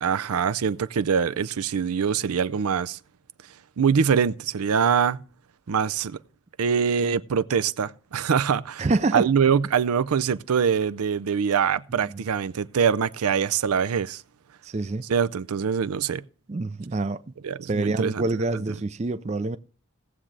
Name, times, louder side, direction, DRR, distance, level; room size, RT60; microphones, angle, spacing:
voice 1, 0.0-3.0 3.8-5.2 5.7-6.2 6.6-8.9 9.1-14.2 15.1-16.2 17.4-18.6, right 7 dB, 85° right, 0.5 m, -24 dB
voice 2, 8.8-9.3 12.0-12.3 14.6-15.0 16.5-17.2 17.7-19.6, right 3 dB, 30° right, 0.4 m, -26 dB
18.0 x 7.4 x 3.3 m
head